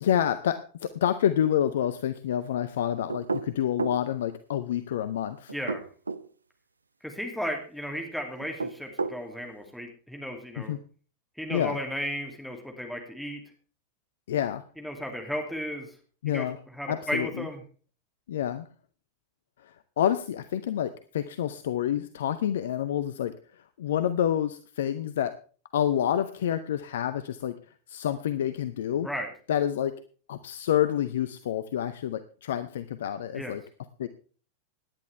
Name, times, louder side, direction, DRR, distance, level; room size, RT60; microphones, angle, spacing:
voice 1, 0.0-5.5 10.7-10.8 11.5-11.8 14.3-14.6 16.2-16.6 16.9-17.3 18.3-18.7 19.6-23.3 23.8-25.4 25.7-27.6 27.9-29.1 29.5-30.0 30.3-33.6 34.0-34.1, left 10 dB, 60° left, 13 dB, 0.6 m, -28 dB
sound 1, 3.1-4.0 5.5-6.3 8.4-9.2, right 4 dB, 75° right, 0.5 m, -31 dB
voice 2, 5.5-5.8 7.0-10.7 11.4-13.4 14.8-15.9 16.3-16.5 16.7-17.6 29.0-29.3 33.3-33.6, equal, ahead, 2 dB, 2.7 m, -34 dB
17.5 x 10.5 x 3.4 m, 0.40 s
figure-of-eight pair, 90°, 0 cm